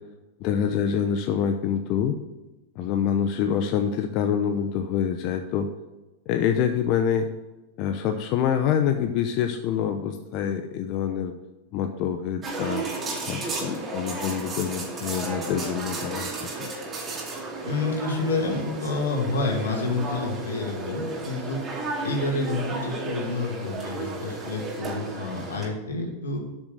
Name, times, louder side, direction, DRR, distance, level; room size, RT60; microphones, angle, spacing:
voice 1, 0.4-2.2 2.8-5.7 6.3-7.3 7.8-11.3 11.7-12.8 13.2-16.3 16.6-16.7, left 8 dB, 50° left, 6 dB, 0.8 m, -26 dB
sound 1, 12.4-25.7, right 3 dB, 30° right, 2.5 m, -33 dB
voice 2, 17.6-21.6 22.0-26.4, left 3 dB, 90° left, 1 dB, 2.4 m, -28 dB
8.4 x 6.3 x 6.6 m, 1.1 s
hypercardioid pair, 110°, 0 cm